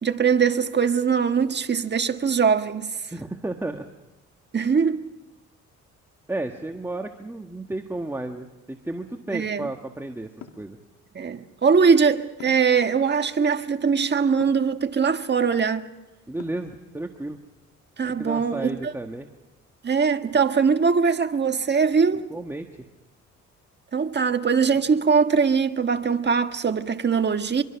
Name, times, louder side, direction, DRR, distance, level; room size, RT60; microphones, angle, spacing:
voice 1, 0.0-2.9 4.5-5.0 9.3-9.7 11.1-15.8 18.0-18.9 19.8-22.3 23.9-27.6, right 6 dB, 35° right, 1.6 m, -21 dB
voice 2, 3.1-3.9 6.3-10.8 16.3-17.4 18.0-19.3 22.3-22.9, right 2 dB, 10° right, 1.5 m, -33 dB
sound 1, 10.4-10.7 12.4-12.8 14.4-14.7 16.4-16.8, left 9 dB, 75° left, 2.4 m, -43 dB
25.5 x 23.5 x 5.9 m
cardioid pair, 90°, 30 cm